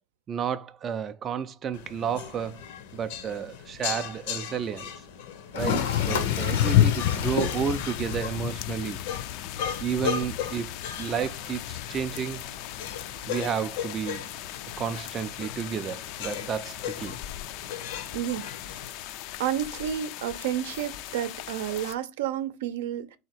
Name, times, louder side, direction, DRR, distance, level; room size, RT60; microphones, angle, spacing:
voice 1, 0.3-2.6 2.9-4.9 5.5-9.0 9.8-10.7 11.0-12.4 13.3-14.2 14.8-17.2, right 7 dB, 25° right, 0.3 m, -31 dB
sound 1, 1.7-18.9, left 8 dB, 70° left, 0.8 m, -38 dB
Toilet flush, 5.5-13.5, left 5 dB, 90° left, 1.0 m, -36 dB
sound 2, 5.6-21.9, left 12 dB, 50° left, 0.3 m, -32 dB
voice 2, 18.1-18.5 18.7-18.8 19.4-23.2, right 10 dB, 85° right, 0.6 m, -30 dB
4.0 x 2.8 x 4.4 m
supercardioid pair, 155°, 0 cm